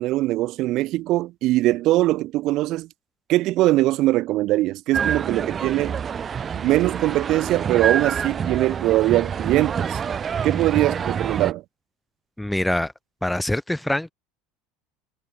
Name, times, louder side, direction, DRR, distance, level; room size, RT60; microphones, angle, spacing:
voice 1, 0.0-2.9 3.3-6.0 6.5-10.0 10.4-11.6, right 17 dB, 50° right, 3.8 m, -21 dB
sound 1, 4.9-11.5, right 7 dB, 25° right, 1.6 m, -27 dB
voice 2, 12.4-12.9 13.2-14.1, left 1 dB, 5° left, 3.9 m, -24 dB
supercardioid pair, 135°, 0 cm